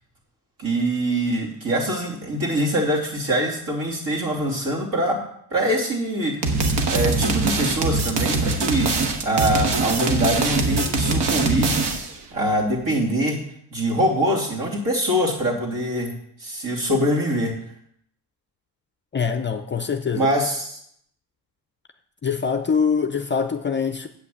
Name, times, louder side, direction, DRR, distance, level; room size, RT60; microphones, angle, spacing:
voice 1, 0.6-5.2 5.5-6.3 6.9-12.0 12.3-13.4 13.7-16.1 16.4-17.5 20.1-20.8, right 1 dB, 50° right, -2 dB, 3.2 m, -23 dB
sound 1, 6.4-12.2, right 3 dB, 70° right, 1.4 m, -22 dB
voice 2, 19.1-20.3 22.2-24.1, left 6 dB, 25° left, 8 dB, 0.5 m, -24 dB
8.4 x 6.0 x 8.0 m, 0.69 s
cardioid pair, 135°, 42 cm